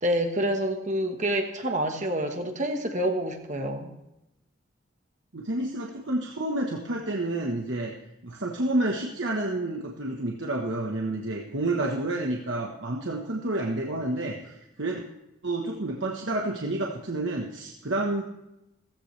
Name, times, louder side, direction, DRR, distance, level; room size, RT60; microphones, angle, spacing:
voice 1, 0.0-3.9, right 1 dB, 35° right, 4 dB, 1.4 m, -27 dB
voice 2, 5.3-8.0 8.2-15.1 15.4-18.2, right 2 dB, 60° right, 0 dB, 1.3 m, -29 dB
16.5 x 15.0 x 3.3 m, 0.90 s
head